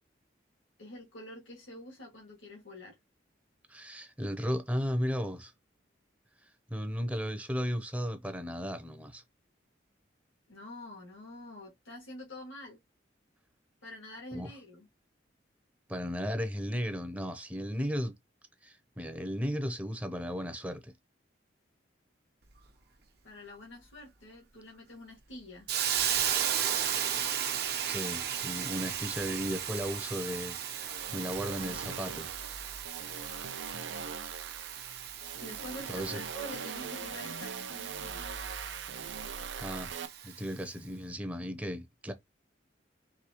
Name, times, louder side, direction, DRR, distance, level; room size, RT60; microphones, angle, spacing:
voice 1, 0.8-3.0 10.5-12.8 13.8-14.9 23.2-25.7 35.4-38.3, left 1 dB, 90° left, 2.1 m, -47 dB
voice 2, 3.7-5.5 6.4-9.2 14.3-14.5 15.9-18.1 18.6-20.9 27.8-32.3 35.9-36.2 39.6-40.0 40.2-42.1, equal, 10° right, 0.7 m, -35 dB
Hiss, 25.7-40.5, right 9 dB, 55° right, 0.9 m, -36 dB
sound 1, 30.7-40.1, right 6 dB, 75° right, 0.6 m, -41 dB
4.8 x 3.2 x 3.0 m
head